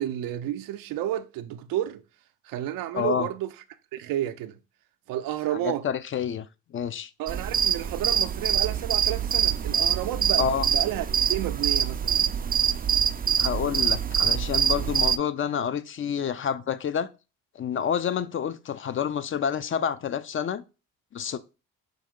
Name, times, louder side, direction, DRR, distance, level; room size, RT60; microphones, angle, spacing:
voice 1, 0.0-2.0 2.5-3.5 3.9-4.6 5.1-5.9 7.2-12.3, right 12 dB, 80° right, 0.5 m, -31 dB
voice 2, 2.9-3.3 5.6-6.5 6.7-7.1 10.4-10.7 13.4-17.1 17.6-20.6 21.1-21.4, left 8 dB, 40° left, 0.5 m, -28 dB
sound 1, 7.3-15.2, right 8 dB, 30° right, 0.4 m, -25 dB
5.3 x 2.8 x 3.7 m
cardioid pair, 70°, 33 cm